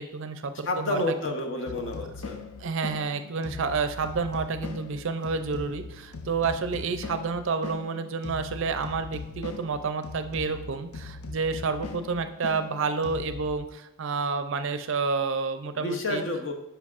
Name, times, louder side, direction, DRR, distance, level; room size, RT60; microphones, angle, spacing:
voice 1, 0.0-1.0 2.6-16.2, right 4 dB, 60° right, 9 dB, 0.4 m, -29 dB
voice 2, 0.6-2.4 15.7-16.5, left 2 dB, 55° left, 3 dB, 0.8 m, -30 dB
sound 1, 1.7-13.5, left 4 dB, 85° left, 0.6 m, -40 dB
9.5 x 5.6 x 2.5 m, 0.92 s
head